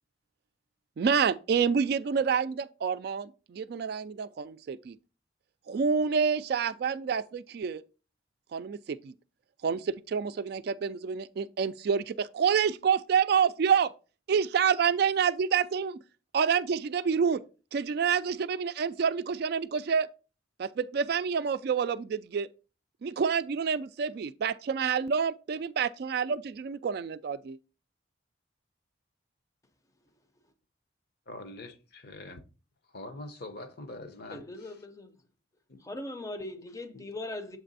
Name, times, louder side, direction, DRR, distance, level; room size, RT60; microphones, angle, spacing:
voice 1, 1.0-5.0 5.7-7.8 8.5-9.1 9.6-13.9 14.3-16.0 16.3-17.4 17.7-20.1 20.6-22.5 23.0-27.6, right 6 dB, 55° right, 0.3 m, -28 dB
voice 2, 31.3-32.4 32.8-34.8 35.7-35.8 36.9-37.0, left 2 dB, 55° left, 0.8 m, -44 dB
voice 3, 34.3-35.2 35.8-37.6, left 2 dB, 15° left, 0.6 m, -39 dB
7.3 x 3.3 x 4.0 m
head